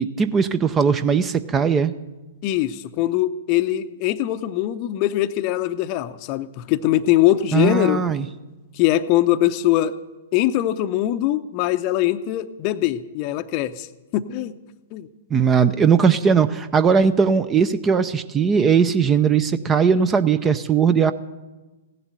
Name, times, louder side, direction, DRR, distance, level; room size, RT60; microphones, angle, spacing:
voice 1, 0.0-1.9 7.5-8.3 15.3-21.1, right 6 dB, 15° right, 13 dB, 0.6 m, -19 dB
voice 2, 2.4-8.0 8.7-9.9 10.3-13.9 14.1-14.5 14.9-15.1, left 14 dB, 35° left, 11 dB, 0.7 m, -22 dB
16.5 x 11.0 x 7.9 m, 1.1 s
figure-of-eight pair, 110°, 0 cm